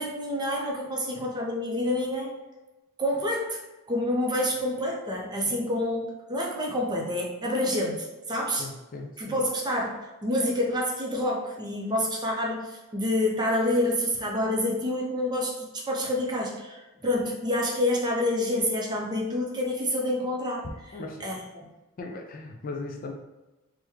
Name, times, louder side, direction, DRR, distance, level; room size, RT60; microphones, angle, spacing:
voice 1, 0.0-2.3 3.0-3.6 3.9-8.7 9.2-9.9 10.2-20.7 21.2-21.7, left 1 dB, 20° right, -1 dB, 0.5 m, -28 dB
voice 2, 8.6-9.4 20.9-21.4 22.0-23.1, left 3 dB, 40° left, 3 dB, 0.3 m, -38 dB
3.5 x 2.1 x 3.1 m, 1.1 s
head